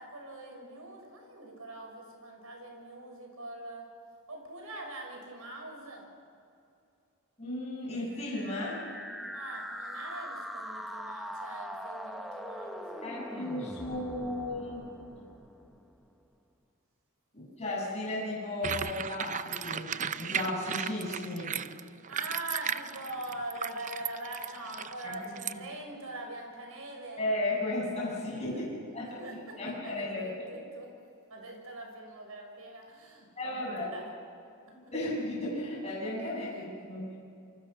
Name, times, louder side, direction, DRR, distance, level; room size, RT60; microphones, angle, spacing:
voice 1, 0.0-3.9 4.3-6.1 9.3-13.0 22.1-27.3 28.4-30.9 31.3-34.1 36.5-36.9, right 1 dB, 70° right, 2 dB, 6.1 m, -43 dB
voice 2, 7.4-8.8 13.0-14.8 15.2-15.3 17.3-21.6 25.0-25.6 27.2-28.6 28.9-29.2 29.6-30.3 33.4-33.9 34.9-37.2, left 1 dB, 30° left, -5 dB, 7.9 m, -35 dB
sound 1, 8.2-16.1, equal, ahead, 1.1 m, -42 dB
sound 2, 18.6-25.5, right 7 dB, 35° right, 0.6 m, -35 dB
28.0 x 26.0 x 5.9 m, 2.4 s
head